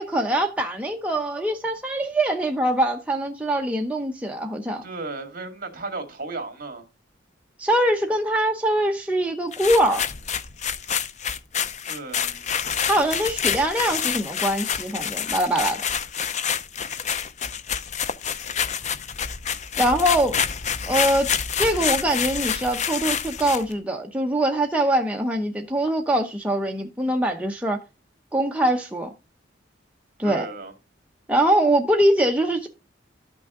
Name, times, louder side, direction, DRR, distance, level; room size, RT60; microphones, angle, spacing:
voice 1, 0.0-4.8 7.6-10.1 12.8-15.8 19.8-20.4 20.9-27.8 28.3-29.1 30.2-30.5 31.3-32.7, right 1 dB, 5° right, 0.7 m, -23 dB
voice 2, 4.8-6.9 11.9-12.4 30.2-30.7, right 3 dB, 45° right, 2.1 m, -34 dB
sound 1, 9.5-23.7, left 7 dB, 40° left, 0.5 m, -27 dB
12.0 x 6.1 x 3.7 m
head